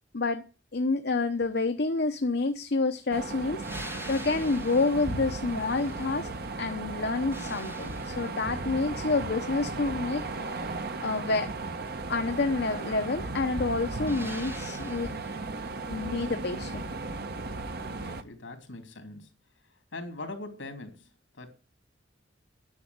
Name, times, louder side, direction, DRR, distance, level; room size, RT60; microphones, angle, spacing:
voice 1, 0.7-6.3 6.6-10.2 11.0-11.5 12.1-15.1 15.9-16.8, left 3 dB, 60° left, 0.9 m, -28 dB
sound 1, 3.1-18.2, right 3 dB, 55° right, 1.2 m, -36 dB
sound 2, 3.6-6.5 6.9-8.7 14.1-15.5 18.1-18.2, equal, 15° right, 2.3 m, -46 dB
voice 2, 17.8-19.4 19.6-21.5, left 2 dB, 80° left, 3.0 m, -42 dB
11.0 x 7.0 x 9.6 m
head